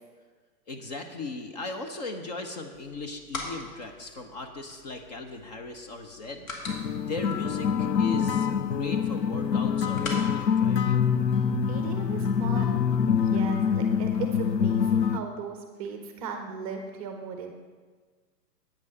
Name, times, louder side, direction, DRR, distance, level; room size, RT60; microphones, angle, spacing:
voice 1, 0.7-6.5 7.0-11.0, left 3 dB, 25° left, 4 dB, 0.7 m, -38 dB
sound 1, 2.7-11.6, left 3 dB, 50° left, 2.2 m, -44 dB
sound 2, 6.7-15.2, left 7 dB, 85° left, 0.7 m, -25 dB
voice 2, 11.7-12.8 13.1-17.5, right 5 dB, 20° right, 5 dB, 0.7 m, -37 dB
9.4 x 8.7 x 5.5 m, 1.4 s
figure-of-eight pair, 125°, 50 cm